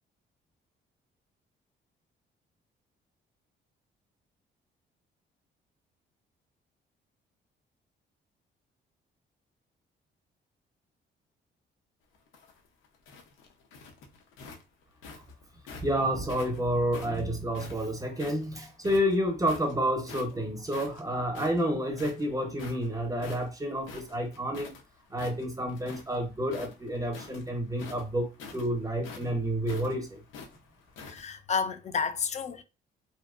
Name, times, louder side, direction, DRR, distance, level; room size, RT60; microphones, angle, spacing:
sound 1, 12.2-15.9 16.3-18.5 18.8-19.7 20.1-20.4 20.7-24.8 25.1-26.2 26.5-31.2, left 4 dB, 90° left, 0.6 m, -46 dB
voice 1, 15.8-24.7 25.1-28.3 28.5-30.2, equal, 15° right, 0.7 m, -29 dB
voice 2, 31.1-32.6, left 5 dB, 35° left, 0.4 m, -31 dB
2.6 x 2.0 x 2.4 m
cardioid pair, 90°, 20 cm